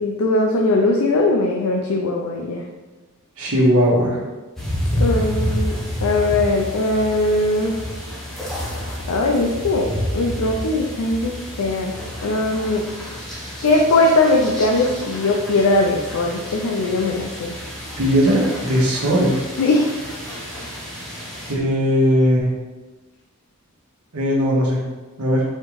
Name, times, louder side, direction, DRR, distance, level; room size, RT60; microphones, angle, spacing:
voice 1, 0.0-2.6 5.0-5.7 6.0-7.7 9.1-12.0 12.2-12.8 13.6-17.5 19.6-20.0, left 2 dB, 85° left, 1 dB, 0.4 m, -20 dB
voice 2, 3.4-4.2 18.0-19.4 21.5-22.5 24.1-24.8 25.2-25.4, equal, 80° right, -3 dB, 1.2 m, -18 dB
sound 1, 4.6-21.5, equal, ahead, 0.9 m, -29 dB
4.4 x 3.6 x 3.1 m, 1.2 s
head